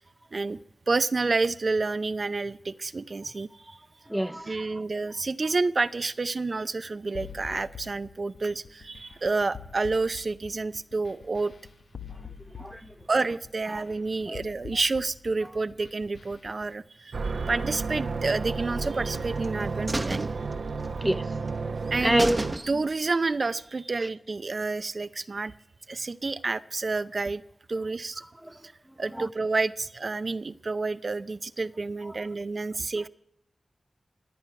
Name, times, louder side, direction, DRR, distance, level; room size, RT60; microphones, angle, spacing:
voice 1, 0.9-3.8 4.5-11.5 13.1-20.3 21.9-22.2 22.7-25.5 25.9-27.4 27.7-28.2 29.0-33.1, right 3 dB, 60° right, 0.6 m, -29 dB
voice 2, 4.1-4.8 12.5-12.9 13.7-13.8 14.3-14.4 15.4-15.5 17.3-17.5 21.0-21.4 22.0-22.4 28.4-28.5 29.1-29.3 32.0-32.2, right 1 dB, 10° right, 0.7 m, -29 dB
sound 1, 7.1-16.7, left 7 dB, 85° left, 0.8 m, -46 dB
sound 2, 17.1-22.5, right 4 dB, 85° right, 1.0 m, -32 dB
sound 3, 18.8-19.5 19.9-21.2 21.5-21.6 21.9-22.0 22.2-23.1 23.4-23.5, right 2 dB, 30° right, 1.0 m, -33 dB
25.0 x 8.5 x 5.8 m
cardioid pair, 45°, 0 cm